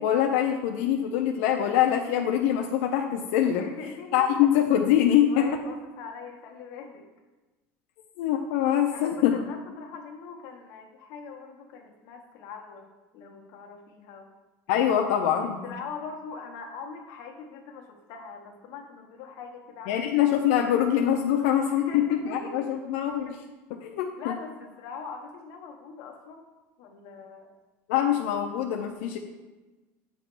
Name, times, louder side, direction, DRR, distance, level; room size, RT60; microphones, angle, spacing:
voice 1, 0.0-3.6 4.1-5.5 8.2-9.4 14.7-15.6 19.9-23.4 23.8-24.1 27.9-29.2, left 10 dB, 85° left, 2 dB, 0.5 m, -24 dB
voice 2, 3.4-4.3 5.3-7.1 8.9-12.9 13.1-14.3 15.4-20.7 21.7-22.7 24.2-26.5 26.8-27.5, left 5 dB, 55° left, 2 dB, 0.9 m, -42 dB
7.8 x 3.0 x 6.0 m, 1.2 s
cardioid pair, 165°, 7 cm